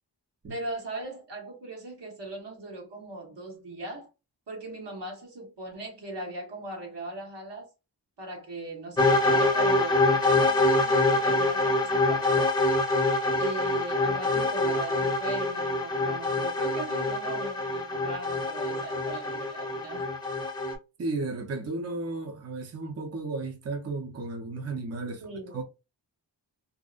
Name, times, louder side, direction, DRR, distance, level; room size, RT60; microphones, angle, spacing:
voice 1, 0.5-4.1 4.5-7.7 8.2-12.5 13.3-20.1 25.0-25.6, right 2 dB, 70° right, 1.1 m, -39 dB
sound 1, 9.0-20.7, left 2 dB, 10° left, 0.7 m, -25 dB
voice 2, 21.0-25.2 25.5-25.6, right 3 dB, 35° right, 0.6 m, -34 dB
2.7 x 2.0 x 2.4 m
cardioid pair, 40°, 44 cm